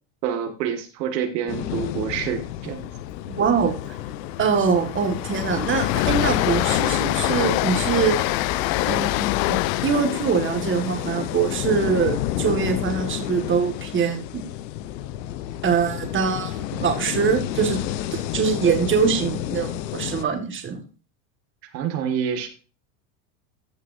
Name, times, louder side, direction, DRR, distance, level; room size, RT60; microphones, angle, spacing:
voice 1, 0.2-2.9 21.7-22.5, right 8 dB, 80° right, 5 dB, 2.1 m, -27 dB
sound 1, 1.5-20.2, left 12 dB, 85° left, 0.9 m, -30 dB
Train, 2.5-2.8 3.0-3.2 3.6-13.7, left 17 dB, 50° left, 0.6 m, -27 dB
voice 2, 3.3-3.9 4.4-8.2 8.9-14.4 15.6-17.8 18.1-20.8, right 6 dB, 25° right, 4 dB, 1.9 m, -23 dB
14.5 x 6.4 x 2.7 m, 0.35 s
supercardioid pair, 125°, 49 cm